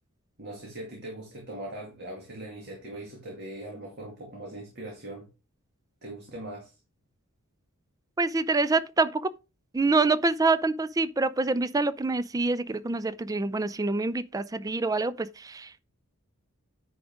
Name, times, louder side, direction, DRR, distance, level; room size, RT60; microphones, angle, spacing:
voice 1, 0.4-5.3 6.0-6.7, right 1 dB, 50° right, 2.3 m, -40 dB
voice 2, 8.2-9.3 9.7-15.8, right 3 dB, 15° right, 0.4 m, -26 dB
9.8 x 5.0 x 3.6 m
head